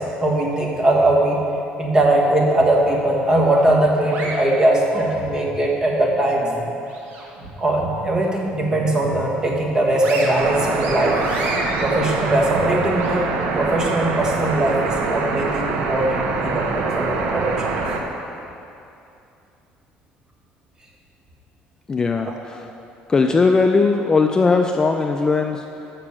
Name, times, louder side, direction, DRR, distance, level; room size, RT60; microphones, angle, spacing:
voice 1, 0.0-1.4 1.8-6.5 7.6-11.2 11.8-13.3 13.5-17.7, right 1 dB, 20° right, -1 dB, 1.3 m, -20 dB
sound 1, 3.5-5.6 6.0-7.5 7.8-8.0 8.5-9.2 9.6-13.1, right 2 dB, 60° right, 1.6 m, -32 dB
sound 2, 10.4-18.0, right 4 dB, 80° right, 0.9 m, -25 dB
voice 2, 21.9-22.7 23.1-25.9, left 4 dB, 20° left, 4 dB, 0.3 m, -19 dB
6.7 x 5.9 x 7.2 m, 2.7 s
cardioid pair, 140°, 3 cm